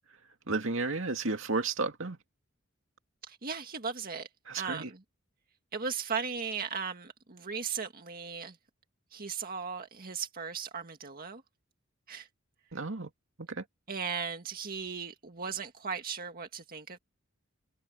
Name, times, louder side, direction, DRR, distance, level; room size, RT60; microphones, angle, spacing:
voice 1, 0.5-2.2 4.5-4.9 12.7-13.1 13.4-13.6, right 3 dB, 65° right, 2.5 m, -32 dB
voice 2, 3.3-4.3 4.6-5.0 5.7-8.6 9.1-11.4 12.1-12.3 13.9-17.0, right 6 dB, 45° right, 1.9 m, -37 dB
head